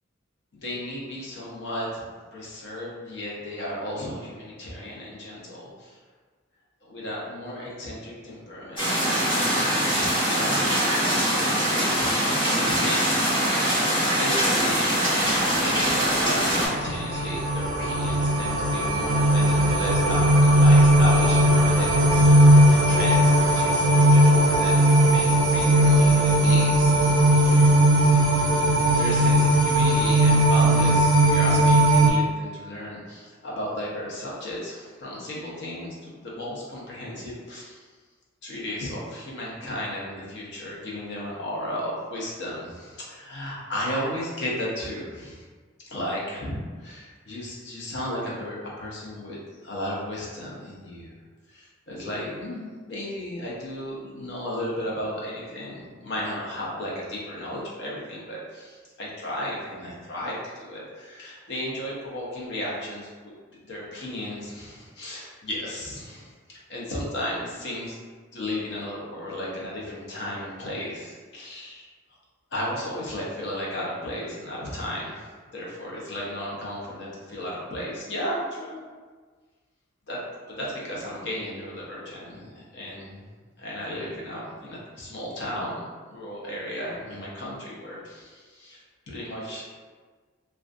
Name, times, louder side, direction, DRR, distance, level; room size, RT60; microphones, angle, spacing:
voice 1, 0.6-2.0 2.3-6.0 6.8-12.1 12.5-13.9 14.2-28.2 29.0-37.9 38.4-45.4 45.9-51.1 51.5-63.3 63.6-68.0 68.3-71.9 72.5-75.3 75.5-78.8 80.1-80.2 80.5-83.2 83.6-89.6, left 1 dB, 60° left, -5 dB, 0.6 m, -34 dB
sound 1, 8.8-16.7, equal, 25° left, 0.9 m, -23 dB
sound 2, 15.9-32.1, right 1 dB, 85° right, 0.3 m, -18 dB
2.4 x 2.2 x 2.5 m, 1.5 s
head